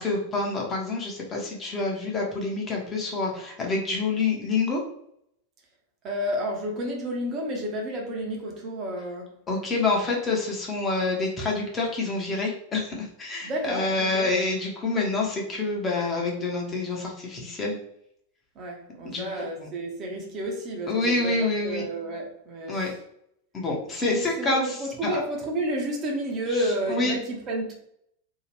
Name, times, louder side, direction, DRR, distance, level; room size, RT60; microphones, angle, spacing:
voice 1, 0.0-4.8 9.5-17.8 19.0-19.7 20.9-21.8 22.7-22.9 23.5-25.2 26.5-27.2, left 3 dB, 20° left, 0.8 m, -27 dB
voice 2, 6.0-9.3 13.4-14.3 18.6-22.9 24.0-27.7, right 1 dB, 30° right, 0.8 m, -31 dB
2.7 x 2.4 x 3.2 m
figure-of-eight pair, 90°, 0 cm